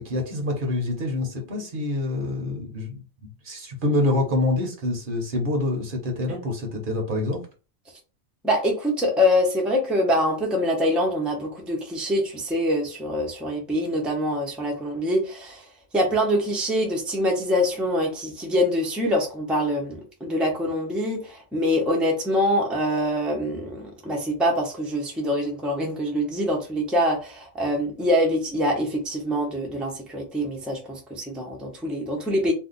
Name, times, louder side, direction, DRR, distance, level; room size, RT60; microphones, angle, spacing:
voice 1, 0.0-3.0 3.4-7.4, left 2 dB, 55° right, 2 dB, 1.0 m, -26 dB
voice 2, 8.4-15.6 15.9-32.5, equal, ahead, 0 dB, 0.6 m, -24 dB
2.5 x 2.3 x 3.8 m, 0.34 s
omnidirectional pair, 1.1 m